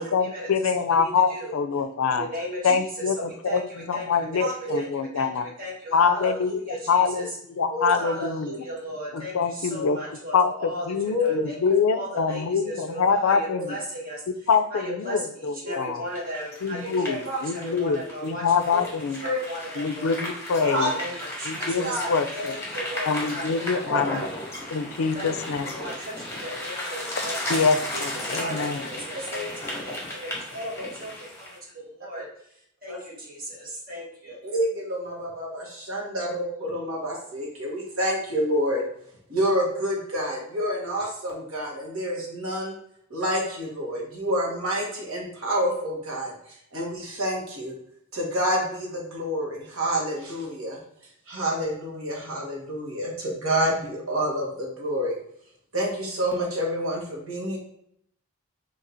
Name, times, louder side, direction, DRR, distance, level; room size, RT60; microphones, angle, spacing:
voice 1, 0.0-2.3 2.6-3.6 3.9-5.4 5.9-7.3 7.6-8.5 9.1-10.0 10.3-13.8 14.5-16.0 16.6-19.2 19.8-20.9 21.4-22.5 23.1-24.3 24.7-25.7 27.5-28.8, left 5 dB, 75° left, 10 dB, 0.4 m, -25 dB
voice 2, 0.9-1.6 2.1-4.8 5.1-7.2 8.0-10.9 11.2-11.6 11.9-14.2 14.7-18.8 19.2-20.1 20.6-24.4 25.1-27.7 27.9-32.3 32.8-34.4, equal, 45° right, -4 dB, 1.7 m, -36 dB
voice 3, 4.4-4.8 7.6-7.9 11.1-11.4 15.7-15.8 17.2-17.4 19.2-19.4 20.6-20.9 21.8-22.1 28.3-28.6 29.3-29.5 32.9-33.0 34.4-38.8 39.3-42.8 43.1-47.8 48.1-50.8 51.3-55.1 55.7-57.6, equal, 75° right, -2 dB, 1.4 m, -28 dB
sound 1, 16.1-31.6, left 1 dB, 10° left, 1.2 m, -35 dB
3.9 x 2.8 x 4.3 m, 0.71 s
head